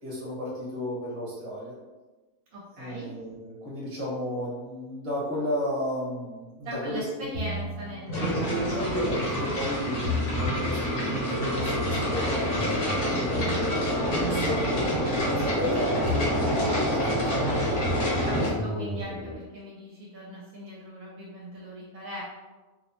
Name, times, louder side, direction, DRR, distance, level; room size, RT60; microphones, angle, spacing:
voice 1, 0.0-1.7 2.8-7.3 8.1-12.5 13.1-16.2 16.7-17.7 17.9-18.7, equal, 25° right, -6 dB, 0.9 m, -33 dB
voice 2, 2.5-3.1 6.6-8.7 18.1-22.2, equal, 70° right, -5 dB, 1.0 m, -39 dB
sound 1, 7.3-9.6 10.0-10.9 11.6-15.7 16.0-16.9 17.6-19.3, left 1 dB, 70° left, 1.0 m, -34 dB
sound 2, 8.1-18.5, equal, 50° left, 0.7 m, -27 dB
2.6 x 2.0 x 2.9 m, 1.2 s
omnidirectional pair, 1.6 m